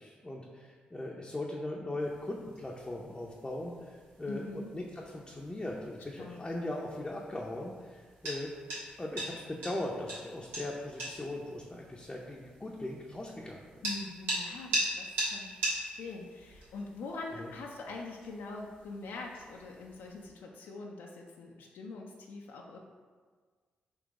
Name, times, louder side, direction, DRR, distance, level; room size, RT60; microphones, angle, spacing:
voice 1, 0.0-8.5 9.0-13.8 17.3-17.5, left 1 dB, 20° left, -2 dB, 0.5 m, -39 dB
sound 1, 2.0-20.3, right 1 dB, 85° right, 1.1 m, -41 dB
voice 2, 4.3-4.7 6.2-6.5 13.8-22.8, left 3 dB, 75° left, 0 dB, 0.4 m, -43 dB
3.8 x 2.8 x 3.6 m, 1.6 s
supercardioid pair, 45°, 4 cm